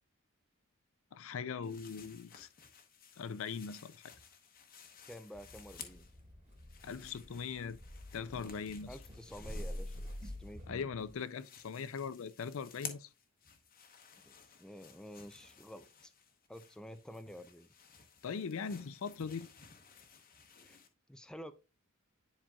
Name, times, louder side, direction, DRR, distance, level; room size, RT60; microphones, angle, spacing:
voice 1, 1.1-2.5 3.2-4.0 6.8-7.8 8.1-8.9 10.7-13.1 18.2-19.5, left 6 dB, 65° left, 0.4 m, -40 dB
sound 1, 1.6-6.2 6.5-10.7 11.0-20.9, left 7 dB, 40° left, 0.9 m, -55 dB
voice 2, 5.1-6.1 8.9-10.9 14.2-16.1 16.5-17.7 20.6-20.8 21.1-21.5, equal, 5° left, 0.4 m, -50 dB
sound 2, 5.3-11.1, equal, 30° right, 2.4 m, -47 dB
10.0 x 4.3 x 2.3 m
head